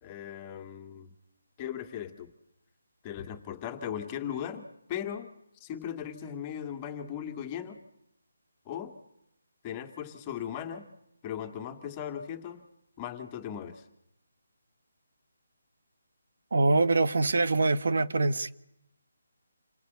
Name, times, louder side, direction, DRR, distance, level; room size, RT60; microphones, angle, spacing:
voice 1, 0.0-1.1 1.6-2.3 3.0-5.3 5.6-7.8 8.7-9.0 9.6-10.9 11.2-12.6 13.0-13.8, left 9 dB, 15° left, 2.2 m, -38 dB
voice 2, 16.5-18.5, right 3 dB, 65° right, 1.4 m, -24 dB
29.0 x 23.5 x 8.3 m
hypercardioid pair, 170°, 0 cm